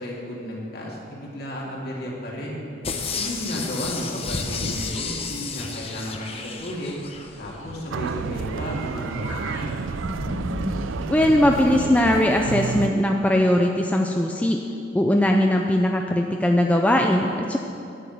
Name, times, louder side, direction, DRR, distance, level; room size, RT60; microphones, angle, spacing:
voice 1, 0.0-2.6 3.2-7.0 7.4-9.8, equal, 55° left, -3 dB, 2.3 m, -33 dB
sound 1, 2.8-7.3 7.7-7.8, left 4 dB, 30° left, 0.8 m, -31 dB
sound 2, 6.7-12.0, equal, 80° left, 2.8 m, -35 dB
sound 3, 7.9-12.9, right 5 dB, 85° right, 0.4 m, -30 dB
voice 2, 11.1-14.6 14.9-17.6, left 1 dB, 5° left, 2 dB, 0.4 m, -20 dB
11.0 x 7.0 x 8.1 m, 2.7 s
head